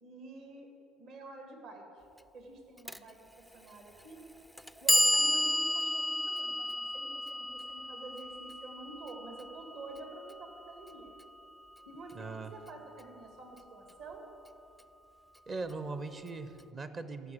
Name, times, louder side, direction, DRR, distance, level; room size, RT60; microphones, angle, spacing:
voice 1, 0.0-0.7 1.0-1.8 2.3-3.2 3.5-4.2 4.8-11.2 11.9-14.3, right 2 dB, 60° right, 3 dB, 1.8 m, -48 dB
Clock, 2.9-3.0 3.9-4.0 4.6-10.6, equal, ahead, 0.4 m, -32 dB
voice 2, 12.1-12.5 15.5-17.3, right 3 dB, 35° right, 11 dB, 0.8 m, -40 dB
14.0 x 6.1 x 7.6 m, 2.8 s
figure-of-eight pair, 60°, 0 cm